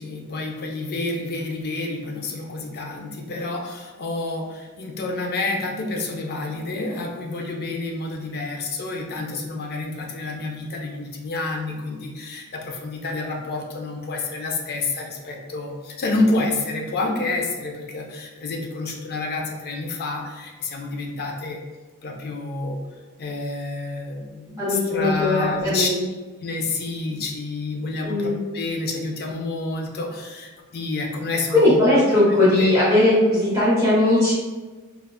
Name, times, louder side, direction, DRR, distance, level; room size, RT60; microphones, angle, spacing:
voice 1, 0.0-21.6 22.0-22.8 23.2-26.1 26.4-28.3 28.5-31.8 32.3-32.9, left 2 dB, 45° left, 2 dB, 0.4 m, -29 dB
voice 2, 24.6-26.0 28.0-28.4 31.5-34.3, left 1 dB, 15° right, -10 dB, 0.8 m, -18 dB
3.5 x 2.3 x 2.3 m, 1.3 s
head